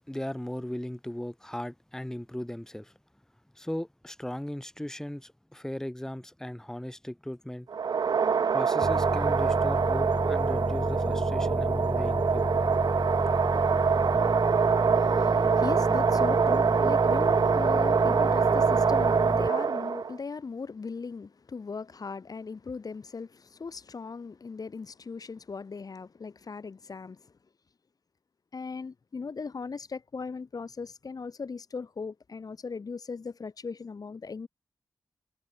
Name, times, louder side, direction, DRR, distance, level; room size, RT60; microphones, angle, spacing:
voice 1, 0.1-2.9 3.5-7.7 8.5-12.6, left 1 dB, 5° left, 1.6 m, -37 dB
sound 1, 7.7-20.2, right 6 dB, 70° right, 0.7 m, -25 dB
sound 2, 8.8-19.5, left 2 dB, 25° left, 2.1 m, -31 dB
voice 2, 14.9-27.3 28.5-34.5, left 4 dB, 60° left, 2.5 m, -38 dB
cardioid pair, 60°, 7 cm